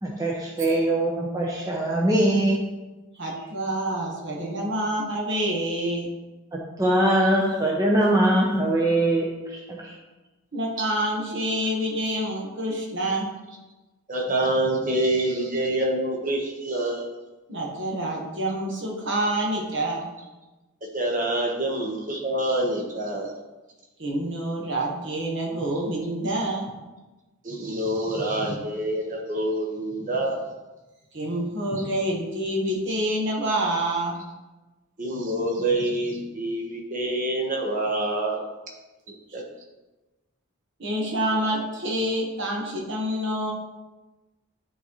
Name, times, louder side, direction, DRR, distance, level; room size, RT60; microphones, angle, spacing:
voice 1, 0.0-2.6 6.8-9.9, right 1 dB, 15° right, -3 dB, 0.7 m, -22 dB
voice 2, 3.2-6.1 10.5-13.3 17.5-20.0 24.0-26.7 31.1-34.2 40.8-43.5, right 1 dB, 55° right, -1 dB, 1.3 m, -27 dB
voice 3, 14.1-17.1 20.9-23.3 27.4-30.4 31.7-31.8 35.0-38.4 39.3-39.4, right 1 dB, 35° right, 0 dB, 1.1 m, -26 dB
10.0 x 4.1 x 3.1 m, 1.1 s
head